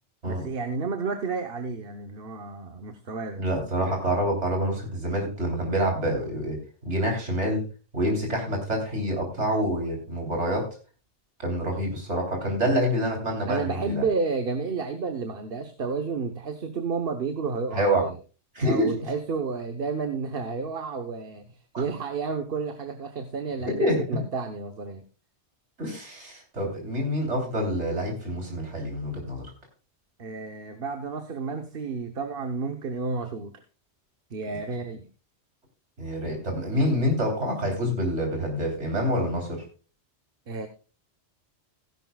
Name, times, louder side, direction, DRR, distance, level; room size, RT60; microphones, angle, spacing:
voice 1, 0.2-3.4 13.5-18.1 18.6-25.0 30.2-33.6 34.3-35.1 40.5-40.7, right 4 dB, 55° right, 7 dB, 1.2 m, -31 dB
voice 2, 3.4-6.6 6.8-7.6 7.9-10.7 11.4-14.0 17.7-18.0 18.5-18.9 21.7-21.8 23.8-24.2 25.8-29.5 36.0-39.6, equal, 85° right, 1 dB, 3.7 m, -27 dB
16.5 x 11.0 x 2.3 m, 0.35 s
omnidirectional pair, 1.2 m